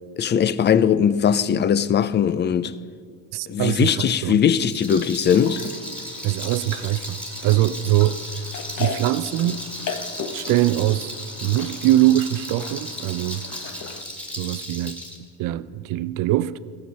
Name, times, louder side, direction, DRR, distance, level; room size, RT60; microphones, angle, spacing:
voice 1, 0.2-2.7 3.5-5.6, left 8 dB, 25° left, 0.4 m, -20 dB
voice 2, 3.3-4.4 6.2-8.5 8.8-9.6 10.3-11.1 11.4-13.4 14.4-15.0 15.4-16.6, right 14 dB, 55° right, 0.5 m, -22 dB
Rattle, 4.5-15.2, equal, 5° left, 2.3 m, -35 dB
sound 1, 5.3-14.0, left 5 dB, 45° left, 1.2 m, -37 dB
16.5 x 7.1 x 6.2 m
supercardioid pair, 95°, 41 cm